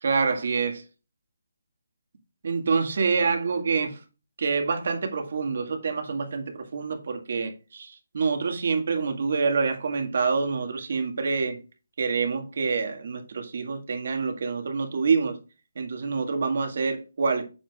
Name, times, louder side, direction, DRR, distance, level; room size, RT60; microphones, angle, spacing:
voice 1, 0.0-0.8 2.4-4.0 4.4-11.6 12.0-15.4 15.8-17.4, right 4 dB, 55° right, 1.8 m, -26 dB
8.7 x 7.3 x 2.4 m
hypercardioid pair, 165°, 0 cm